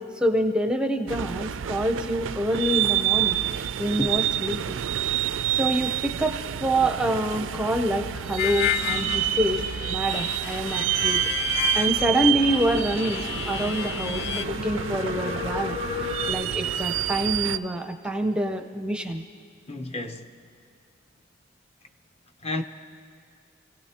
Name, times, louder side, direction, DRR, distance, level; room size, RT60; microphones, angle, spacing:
voice 1, 0.0-3.4 3.8-5.2 5.5-9.6 9.9-11.2 11.5-19.2, right 1 dB, 5° right, 0.6 m, -26 dB
sound 1, 1.1-17.6, right 12 dB, 85° right, 0.4 m, -28 dB
sound 2, 5.9-16.3, left 4 dB, 75° left, 1.6 m, -38 dB
Harmonica, 8.4-14.5, left 10 dB, 60° left, 0.4 m, -31 dB
voice 2, 19.7-20.4 22.4-22.6, left 2 dB, 35° left, 0.7 m, -32 dB
29.0 x 17.0 x 2.9 m
head